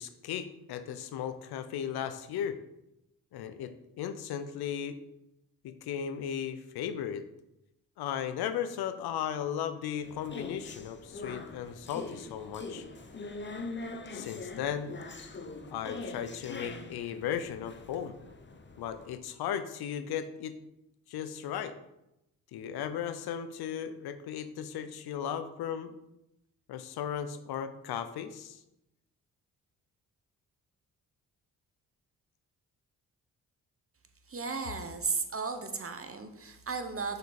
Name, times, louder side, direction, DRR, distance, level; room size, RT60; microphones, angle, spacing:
voice 1, 0.0-2.6 3.3-5.0 5.6-7.2 8.0-12.8 14.1-14.9 15.7-18.1 18.8-20.5 21.1-21.7 22.5-25.9 26.7-28.6, left 9 dB, 80° left, 11 dB, 0.7 m, -36 dB
sound 1, 10.0-19.2, left 3 dB, 30° left, 0.9 m, -43 dB
voice 2, 34.3-37.2, right 4 dB, 35° right, 7 dB, 1.1 m, -35 dB
6.4 x 5.2 x 4.2 m, 0.88 s
supercardioid pair, 45°, 37 cm